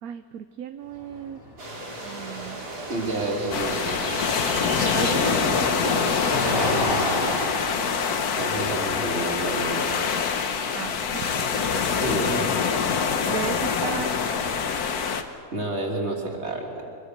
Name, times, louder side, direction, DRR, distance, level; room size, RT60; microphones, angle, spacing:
voice 1, 0.0-1.4 2.0-2.7 5.0-6.3 10.7-11.5 13.2-14.2, right 9 dB, 70° right, 9 dB, 1.1 m, -35 dB
sound 1, 0.9-14.4, equal, 45° left, 4.5 m, -35 dB
sound 2, 1.6-7.5, right 1 dB, 85° right, 4.4 m, -34 dB
voice 2, 2.9-4.5 8.4-9.9 11.9-12.5 15.5-16.9, right 2 dB, 45° right, 0 dB, 3.2 m, -30 dB
sound 3, 3.5-15.2, left 6 dB, 75° left, 1.6 m, -25 dB
24.0 x 22.5 x 6.6 m, 2.4 s
omnidirectional pair, 1.7 m